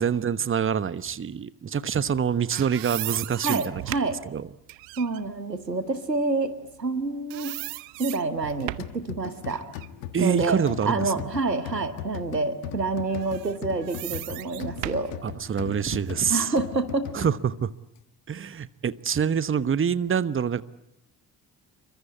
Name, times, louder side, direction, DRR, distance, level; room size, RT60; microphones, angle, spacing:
voice 1, 0.0-3.8 4.2-4.5 10.1-11.2 15.2-16.5 17.1-17.7 18.3-20.6, right 7 dB, 25° right, 16 dB, 1.1 m, -26 dB
sound 1, 2.1-7.0 7.3-9.0 9.5-11.5 11.9-12.1 13.1-16.1, right 22 dB, 60° right, 1.0 m, -37 dB
voice 2, 3.4-4.2 5.0-6.5 6.8-7.6 8.0-9.7 10.2-15.2 16.3-17.1, right 3 dB, 90° right, 12 dB, 1.2 m, -28 dB
sound 2, 8.8-17.7, left 12 dB, 70° left, 1.4 m, -39 dB
28.5 x 24.5 x 8.5 m, 0.84 s
figure-of-eight pair, 45°, 48 cm